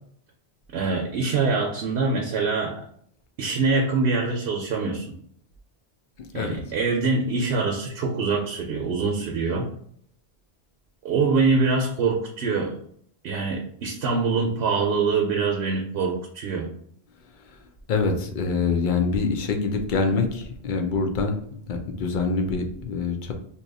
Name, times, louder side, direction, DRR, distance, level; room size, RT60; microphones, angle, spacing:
voice 1, 0.7-2.7 3.4-5.1 6.3-9.7 11.0-12.7 13.2-16.7, right 4 dB, 70° right, 0 dB, 0.8 m, -24 dB
voice 2, 17.9-21.4 21.7-23.3, left 4 dB, 55° left, 5 dB, 0.6 m, -25 dB
2.8 x 2.3 x 3.9 m, 0.65 s
omnidirectional pair, 1.1 m